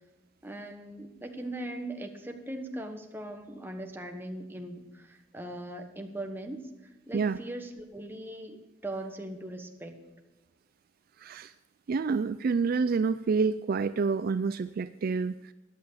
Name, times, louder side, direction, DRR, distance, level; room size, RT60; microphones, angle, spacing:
voice 1, 0.4-6.6 7.0-10.0, right 1 dB, 10° right, 4 dB, 1.3 m, -40 dB
voice 2, 11.2-11.5 11.9-15.5, right 5 dB, 50° right, 13 dB, 0.3 m, -28 dB
14.0 x 10.5 x 5.0 m, 1.1 s
head